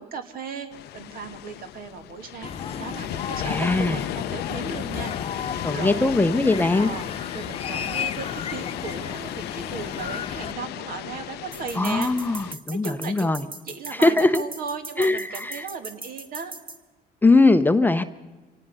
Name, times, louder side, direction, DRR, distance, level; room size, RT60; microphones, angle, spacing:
voice 1, 0.0-6.2 6.8-16.5, right 5 dB, 60° right, 7 dB, 2.2 m, -37 dB
sound 1, 0.7-12.5, left 14 dB, 75° left, 0.6 m, -34 dB
sound 2, 2.4-10.5, left 7 dB, 35° left, 1.0 m, -34 dB
voice 2, 3.4-4.0 5.6-6.9 11.8-13.4 13.9-14.4 15.0-15.7 17.2-18.0, left 2 dB, 10° left, 9 dB, 0.8 m, -20 dB
sound 3, 11.5-16.8, right 3 dB, 30° right, 2.0 m, -39 dB
26.0 x 18.0 x 5.6 m, 1.2 s
cardioid pair, 110°, 17 cm